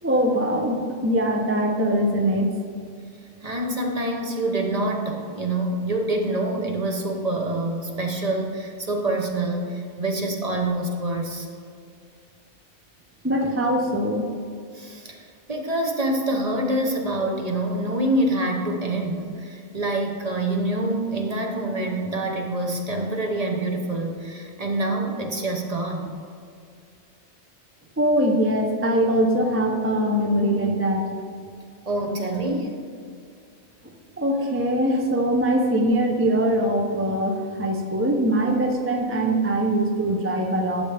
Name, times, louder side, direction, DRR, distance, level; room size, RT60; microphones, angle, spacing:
voice 1, 0.0-2.5 13.2-14.2 28.0-31.0 34.2-40.8, right 1 dB, 15° right, 2 dB, 0.5 m, -22 dB
voice 2, 3.4-11.5 14.7-26.2 31.9-32.8, right 1 dB, 35° right, 2 dB, 0.9 m, -26 dB
11.5 x 6.9 x 3.4 m, 2.3 s
omnidirectional pair, 1.2 m